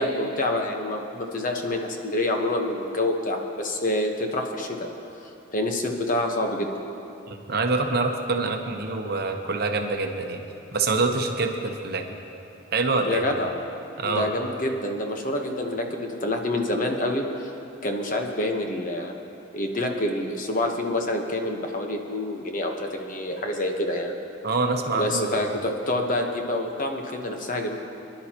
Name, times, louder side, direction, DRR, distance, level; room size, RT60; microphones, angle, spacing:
voice 1, 0.0-4.9 5.2-6.7 13.0-13.5 14.0-17.2 17.8-19.1 19.5-24.1 24.9-27.8, left 1 dB, 40° left, 3 dB, 1.1 m, -27 dB
voice 2, 7.3-10.4 10.7-12.0 12.7-13.2 14.0-14.3 24.4-25.4, right 3 dB, 50° right, 4 dB, 0.9 m, -25 dB
24.0 x 11.0 x 3.0 m, 2.8 s
head